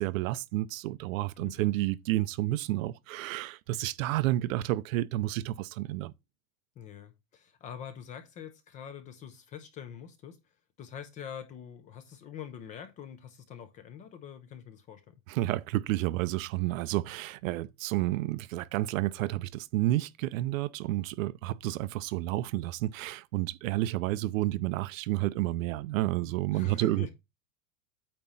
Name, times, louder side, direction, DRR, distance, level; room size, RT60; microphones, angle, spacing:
voice 1, 0.0-6.1 15.3-27.1, right 16 dB, 65° right, 0.6 m, -30 dB
voice 2, 6.8-10.4 10.8-15.1 26.5-27.1, left 8 dB, 20° left, 0.4 m, -45 dB
8.6 x 3.0 x 5.4 m
supercardioid pair, 155°, 44 cm